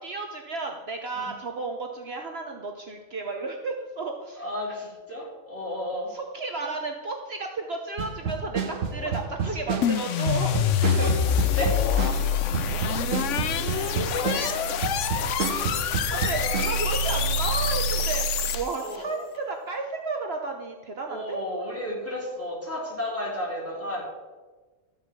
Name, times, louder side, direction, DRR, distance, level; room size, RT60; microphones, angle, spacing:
voice 1, 0.0-4.9 6.1-11.1 11.5-11.6 14.3-14.7 16.1-18.3 18.5-21.4, right 3 dB, 55° right, 3 dB, 1.1 m, -33 dB
voice 2, 4.4-6.1 9.0-9.1 11.0-11.1 11.4-11.7 13.6-14.4 15.1-15.3 15.7-16.6 18.8-19.1 21.1-24.0, left 1 dB, 10° left, -6 dB, 3.9 m, -33 dB
sound 1, 8.0-16.8, right 6 dB, 80° right, 1.4 m, -30 dB
sound 2, 9.8-18.9, left 6 dB, 75° left, 1.0 m, -25 dB
13.0 x 5.7 x 7.4 m, 1.3 s
omnidirectional pair, 1.3 m